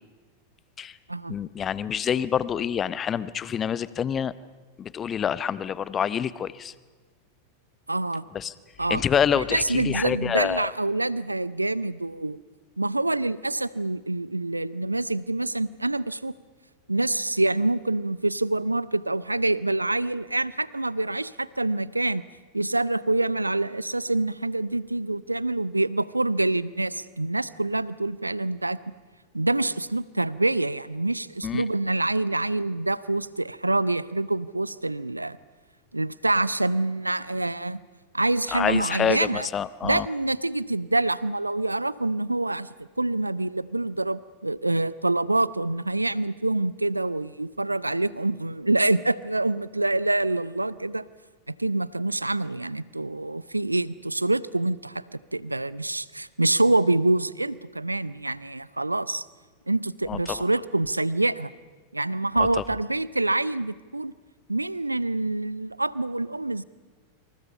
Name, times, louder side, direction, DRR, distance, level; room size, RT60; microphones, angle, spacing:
voice 1, 1.3-4.3 4.8-6.7 8.3-8.5 8.9-10.7 31.4-31.6 38.5-40.1 60.1-60.2, left 8 dB, 25° left, 17 dB, 0.9 m, -27 dB
voice 2, 7.9-8.3 8.8-9.0 9.4-12.4 12.8-16.3 16.9-22.3 22.5-28.8 29.3-35.4 35.9-37.8 38.1-39.5 39.8-51.0 51.5-55.0 55.3-59.3 59.7-61.5 61.9-64.1 64.5-66.6, right 2 dB, 85° right, 19 dB, 0.7 m, -26 dB
28.0 x 27.0 x 5.5 m, 1.4 s
figure-of-eight pair, 90°, 0 cm